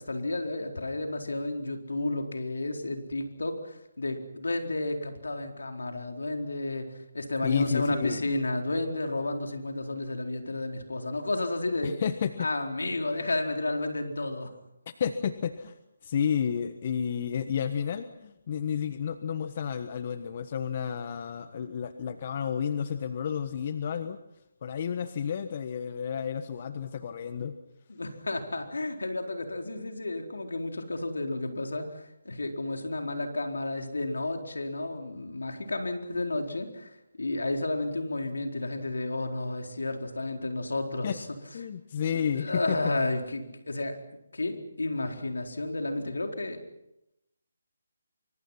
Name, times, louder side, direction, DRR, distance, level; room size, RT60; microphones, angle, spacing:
voice 1, 0.0-12.0 12.4-14.5 27.9-41.3 42.1-44.0 44.3-46.6, left 2 dB, 80° left, 3 dB, 4.3 m, -32 dB
voice 2, 7.4-8.2 11.8-12.3 15.0-15.7 16.0-24.2 24.6-27.5 41.0-41.2 41.5-42.8, left 7 dB, 40° left, 10 dB, 1.3 m, -31 dB
26.0 x 24.5 x 5.8 m, 0.86 s
figure-of-eight pair, 150°, 0 cm